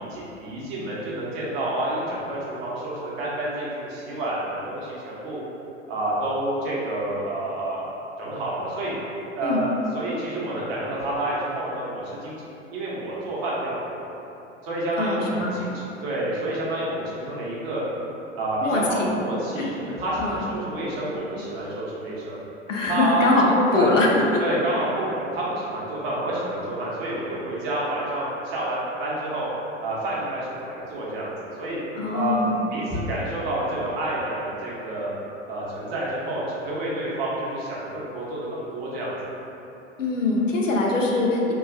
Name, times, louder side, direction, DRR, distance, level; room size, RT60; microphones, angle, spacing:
voice 1, 0.0-5.4 5.9-7.8 8.2-8.9 9.3-9.7 9.9-12.4 12.7-14.1 14.6-17.8 18.3-22.4 22.9-23.9 24.4-29.5 29.8-31.8 32.1-32.4 32.7-35.1 35.5-39.1, right 1 dB, 55° right, -6 dB, 0.9 m, -29 dB
voice 2, 15.0-15.6 18.6-19.1 19.6-19.7 20.2-20.4 22.7-24.4 32.0-32.5 40.0-41.5, left 2 dB, 85° left, -2 dB, 0.5 m, -22 dB
2.9 x 2.3 x 2.5 m, 2.9 s
figure-of-eight pair, 90°, 37 cm